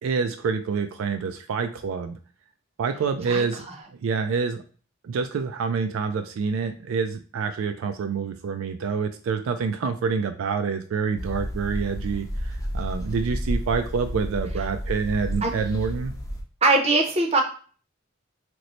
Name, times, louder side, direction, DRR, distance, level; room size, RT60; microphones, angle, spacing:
voice 1, 0.0-2.2 2.8-3.7 4.0-4.6 5.0-16.1, right 5 dB, 80° right, 8 dB, 0.3 m, -27 dB
sound 1, 11.2-16.4, equal, 15° left, 0.5 m, -31 dB
voice 2, 16.6-17.4, right 2 dB, 30° right, 3 dB, 0.6 m, -20 dB
3.0 x 2.0 x 3.9 m, 0.40 s
head